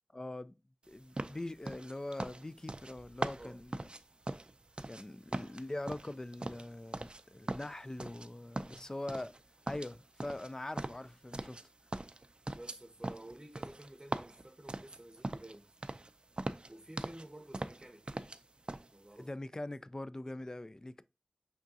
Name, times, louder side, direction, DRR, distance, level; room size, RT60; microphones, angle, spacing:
voice 1, 0.1-0.5 0.9-3.9 4.8-9.3 9.7-11.6 19.2-21.0, left 1 dB, 30° left, 0.3 m, -42 dB
sound 1, 1.2-5.0 5.3-7.2 7.5-8.3 8.6-9.4 9.7-11.7 11.9-15.6 15.8-16.1 16.4-17.3 17.5-18.4 18.7-18.9, right 2 dB, 50° right, 0.3 m, -40 dB
voice 2, 12.5-15.8 16.7-18.4 18.9-19.3, right 1 dB, 25° right, 0.7 m, -52 dB
5.5 x 3.6 x 2.6 m
wide cardioid pair, 60°, 2 cm